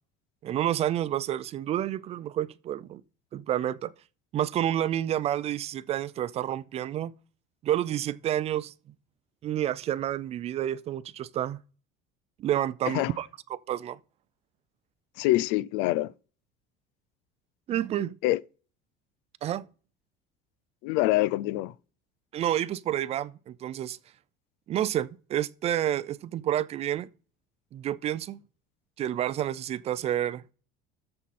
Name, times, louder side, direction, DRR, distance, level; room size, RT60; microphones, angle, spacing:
voice 1, 0.4-3.0 3.3-3.9 4.3-7.1 7.6-8.7 9.4-11.6 12.4-14.0 17.7-18.2 19.4-19.6 22.3-24.0 24.7-27.1 27.7-28.4 29.0-30.4, right 11 dB, 35° right, 0.4 m, -29 dB
voice 2, 15.2-16.1 18.2-18.4 20.8-21.7, left 17 dB, 75° left, 0.4 m, -25 dB
13.5 x 5.5 x 4.2 m
cardioid pair, 150°, 18 cm